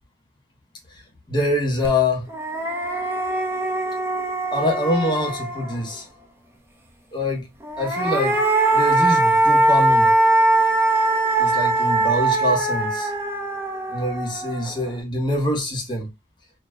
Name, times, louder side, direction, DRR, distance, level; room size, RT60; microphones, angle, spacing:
voice 1, 1.3-2.3 4.5-6.0 7.1-7.4 7.8-8.4 8.7-10.1 11.4-13.1 13.9-16.1, left 1 dB, 25° left, 1.4 m, -24 dB
sound 1, 1.8-1.9 2.3-6.0 7.6-14.9, right 2 dB, 15° right, 0.9 m, -21 dB
4.3 x 3.0 x 2.4 m
head